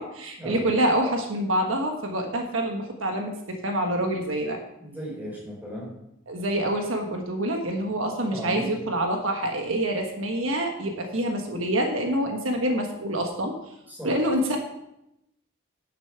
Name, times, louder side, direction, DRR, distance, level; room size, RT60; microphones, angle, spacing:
voice 1, 0.0-4.6 6.3-13.5 14.0-14.6, right 1 dB, 75° right, 3 dB, 1.3 m, -26 dB
voice 2, 4.8-5.9 8.3-8.7 13.9-14.1, equal, 10° right, -4 dB, 4.1 m, -36 dB
10.0 x 7.0 x 5.8 m, 0.84 s
head